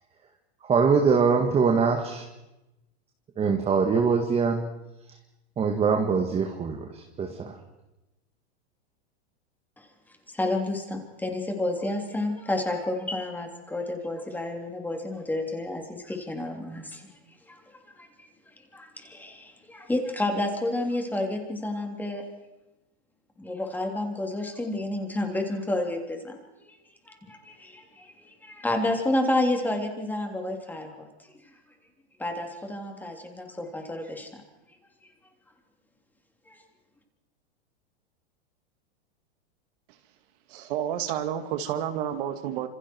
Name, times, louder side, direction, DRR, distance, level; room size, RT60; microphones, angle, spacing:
voice 1, 0.6-2.2 3.4-4.6 5.6-7.5, right 5 dB, 20° right, 3 dB, 1.9 m, -23 dB
voice 2, 10.3-17.1 17.5-17.6 18.0-18.1 18.7-22.2 23.4-26.4 27.1-31.1 32.2-34.3 36.5-36.6, left 1 dB, 5° left, 3 dB, 3.3 m, -30 dB
voice 3, 40.5-42.7, right 10 dB, 55° right, 7 dB, 2.2 m, -30 dB
28.5 x 27.0 x 4.7 m, 0.99 s
supercardioid pair, 140°, 32 cm